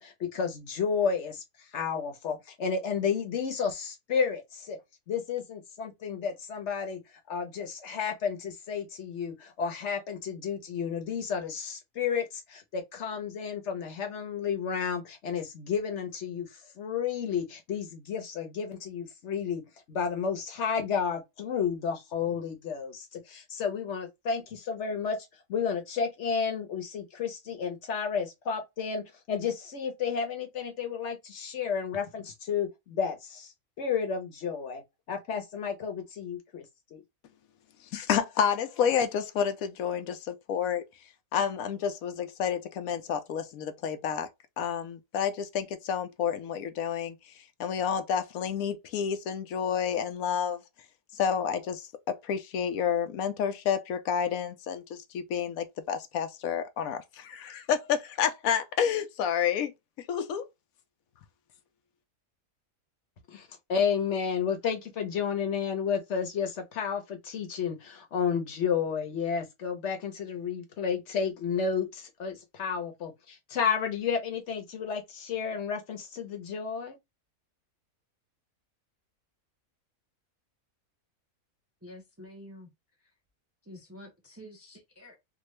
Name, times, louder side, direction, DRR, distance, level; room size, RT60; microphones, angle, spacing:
voice 1, 0.0-1.4 1.7-4.8 5.1-7.0 7.3-16.5 16.8-19.6 19.9-25.2 25.5-33.5 33.8-34.8 35.1-36.6 36.9-37.0 63.3-77.0, left 6 dB, 60° left, 1.1 m, -31 dB
voice 2, 37.9-40.8 41.3-44.3 44.6-47.2 47.6-50.6 51.1-59.7 60.0-60.5, left 8 dB, 80° left, 1.0 m, -29 dB
voice 3, 81.8-82.7 83.0-83.1 83.6-85.2, left 1 dB, 15° right, 0.5 m, -48 dB
3.6 x 2.3 x 3.1 m
omnidirectional pair, 1.5 m